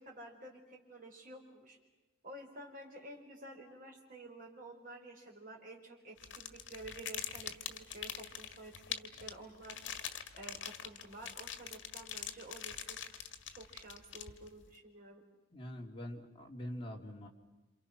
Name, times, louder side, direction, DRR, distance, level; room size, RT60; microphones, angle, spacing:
voice 1, 0.0-1.8 2.2-9.8 10.4-13.0 13.5-15.2, right 1 dB, 45° right, 0 dB, 5.3 m, -51 dB
sound 1, 6.2-14.7, left 9 dB, 75° left, 1.7 m, -44 dB
voice 2, 15.5-17.3, equal, 30° left, 0 dB, 3.0 m, -44 dB
28.0 x 27.5 x 6.2 m, 1.1 s
head